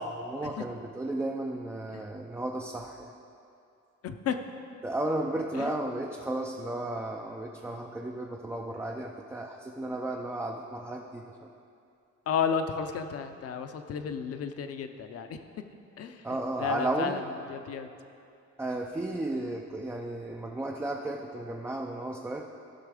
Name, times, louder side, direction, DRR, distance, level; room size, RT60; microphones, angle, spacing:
voice 1, 0.2-3.2 4.8-11.3 16.2-17.2 18.6-22.4, right 1 dB, 10° right, 0 dB, 0.4 m, -34 dB
voice 2, 4.0-4.4 5.5-5.8 12.3-15.4 16.0-16.2 16.6-17.2 17.5-17.9, left 7 dB, 50° left, 8 dB, 0.7 m, -32 dB
15.5 x 5.8 x 4.9 m, 2.5 s
cardioid pair, 160°, 30 cm